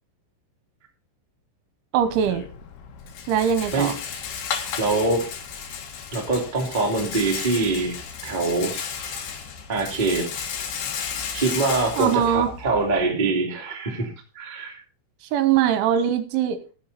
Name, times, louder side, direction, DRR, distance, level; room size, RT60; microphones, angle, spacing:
voice 1, 1.9-2.4 3.3-3.9 12.0-12.5 15.3-16.6, right 9 dB, 80° right, 11 dB, 3.3 m, -21 dB
Rattle, 2.0-13.0, left 7 dB, 65° left, 3.0 m, -34 dB
voice 2, 4.8-5.3 6.1-7.9 8.2-9.2 9.7-10.3 11.3-14.8, right 3 dB, 20° right, 0 dB, 1.2 m, -24 dB
16.0 x 7.2 x 4.1 m, 0.35 s
omnidirectional pair, 5.7 m